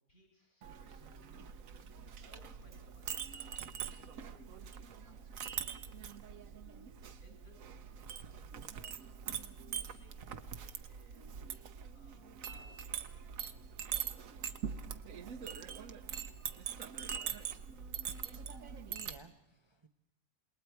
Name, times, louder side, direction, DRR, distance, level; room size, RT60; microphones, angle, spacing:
voice 1, 0.1-6.5 6.8-11.3 11.9-13.9, equal, 50° left, 0 dB, 8.5 m, -66 dB
Chink clink, 0.6-19.2, right 8 dB, 60° right, 1.2 m, -43 dB
voice 2, 17.9-19.9, right 3 dB, 25° right, 5 dB, 0.6 m, -58 dB
27.5 x 20.5 x 4.7 m, 0.88 s
omnidirectional pair, 1.7 m